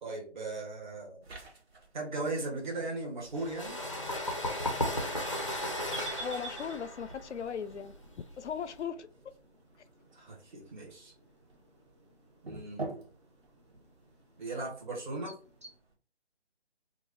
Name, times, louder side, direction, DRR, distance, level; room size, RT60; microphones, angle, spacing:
voice 1, 0.0-1.4 1.9-3.8 10.1-11.1 12.4-12.9 14.4-15.4, right 2 dB, 45° right, 1.4 m, -38 dB
sound 1, 1.2-15.9, right 2 dB, 60° right, 1.3 m, -51 dB
sound 2, 3.3-8.8, left 1 dB, 30° left, 0.4 m, -35 dB
sound 3, 5.9-15.8, right 2 dB, 25° right, 0.5 m, -52 dB
voice 2, 6.2-7.9 8.4-9.3, left 7 dB, 90° left, 0.5 m, -38 dB
2.9 x 2.4 x 4.0 m
figure-of-eight pair, 165°, 34 cm